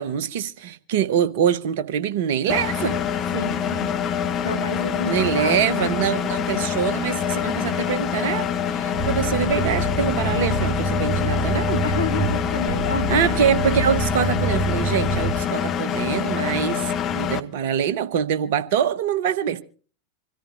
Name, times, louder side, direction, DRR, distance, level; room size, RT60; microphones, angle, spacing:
voice 1, 0.0-3.0 5.1-11.8 13.1-19.6, right 8 dB, 50° right, 1.1 m, -24 dB
Engine, 2.5-17.4, left 8 dB, 30° left, 1.1 m, -25 dB
voice 2, 3.3-4.0 4.4-5.9 11.8-13.2, left 3 dB, 75° left, 1.4 m, -30 dB
sound 1, 8.9-15.3, right 1 dB, 15° right, 7.5 m, -26 dB
26.0 x 14.0 x 2.6 m
figure-of-eight pair, 90°, 0 cm